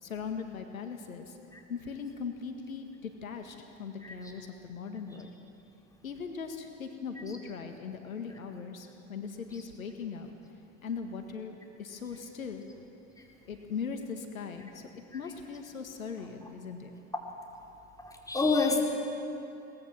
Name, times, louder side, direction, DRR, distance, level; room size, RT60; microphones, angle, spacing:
voice 1, 0.0-1.4 1.7-5.3 6.0-10.3 10.8-12.6 13.5-16.9, left 5 dB, 85° left, 5 dB, 1.8 m, -39 dB
voice 2, 18.0-18.8, left 4 dB, 10° left, -1 dB, 4.2 m, -29 dB
22.5 x 19.0 x 7.4 m, 2.9 s
hypercardioid pair, 85°, 40 cm